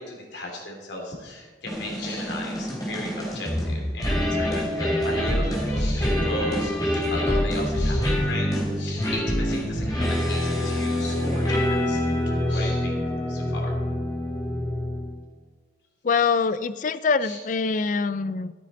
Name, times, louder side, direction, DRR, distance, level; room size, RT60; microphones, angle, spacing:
voice 1, 0.0-12.0 12.5-12.9 13.3-13.7 17.2-17.4, left 1 dB, 80° left, 0 dB, 3.1 m, -36 dB
sound 1, 1.7-15.2, left 1 dB, 20° left, 3.3 m, -25 dB
voice 2, 16.0-18.5, left 5 dB, 45° left, 15 dB, 0.4 m, -24 dB
13.0 x 9.2 x 4.2 m, 1.5 s
head